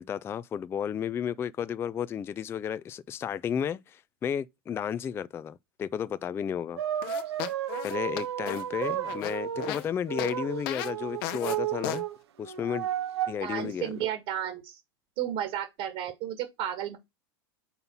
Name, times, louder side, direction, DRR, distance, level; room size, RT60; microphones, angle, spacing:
voice 1, 0.0-6.8 7.8-12.0 12.4-12.9 13.3-13.9, left 8 dB, 20° left, 0.3 m, -33 dB
sound 1, 6.8-9.7 10.1-12.2 12.4-13.4 14.0-14.1, right 10 dB, 90° right, 0.9 m, -33 dB
sound 2, 7.0-9.9 10.2-10.3 10.7-10.9 11.2-11.6 11.8-12.0, left 12 dB, 60° left, 1.0 m, -35 dB
voice 2, 13.4-14.8 15.2-17.0, right 10 dB, 55° right, 1.8 m, -33 dB
5.5 x 4.0 x 5.8 m
hypercardioid pair, 120°, 13 cm